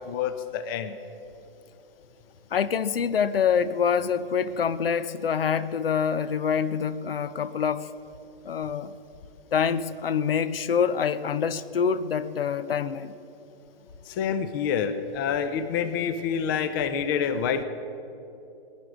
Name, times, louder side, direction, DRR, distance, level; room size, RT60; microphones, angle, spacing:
voice 1, 0.0-1.0 14.0-17.6, left 7 dB, 25° left, 12 dB, 0.5 m, -27 dB
voice 2, 2.5-7.9 8.4-9.0 9.5-13.1, left 7 dB, 70° left, 16 dB, 0.7 m, -26 dB
20.5 x 10.5 x 6.1 m, 2.9 s
hypercardioid pair, 140°, 29 cm